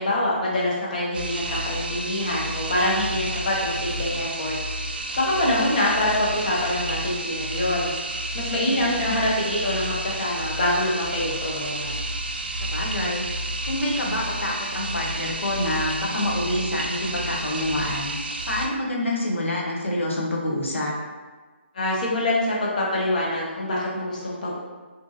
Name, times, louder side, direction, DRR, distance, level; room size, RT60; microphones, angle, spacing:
voice 1, 0.0-4.6 5.2-7.9 8.3-11.9 21.7-24.6, left 1 dB, 40° left, -5 dB, 0.7 m, -25 dB
sound 1, 1.1-18.7, right 1 dB, 50° right, 0.3 m, -30 dB
voice 2, 8.5-8.9 12.7-13.3 13.6-18.1 18.4-20.9, left 1 dB, 85° left, -3 dB, 0.8 m, -27 dB
2.7 x 2.5 x 2.3 m, 1.3 s
hypercardioid pair, 170°, 7 cm